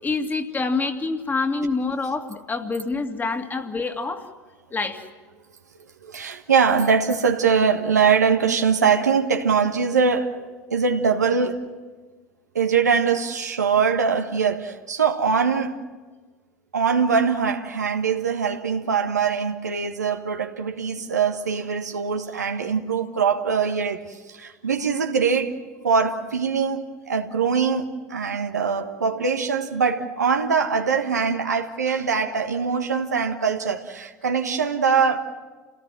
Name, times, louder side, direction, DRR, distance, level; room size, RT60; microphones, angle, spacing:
voice 1, 0.0-4.3 4.7-5.0 34.5-34.6, left 3 dB, 20° left, 2.2 m, -26 dB
voice 2, 6.0-11.7 12.5-15.7 16.7-25.6 25.8-35.3, right 6 dB, 85° right, 1.5 m, -22 dB
29.0 x 18.0 x 7.6 m
figure-of-eight pair, 75°, 9 cm